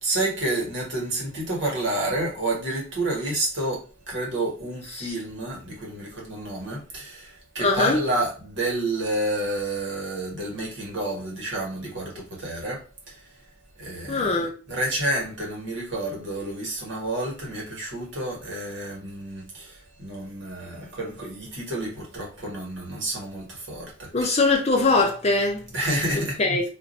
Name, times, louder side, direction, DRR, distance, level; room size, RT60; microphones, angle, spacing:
voice 1, 0.0-13.2 13.8-24.4 25.7-26.4, right 1 dB, 70° right, 1.3 m, -30 dB
voice 2, 7.6-8.0 14.1-14.5 24.1-25.6 26.4-26.6, left 3 dB, 35° left, 0.6 m, -21 dB
2.5 x 2.2 x 4.0 m
head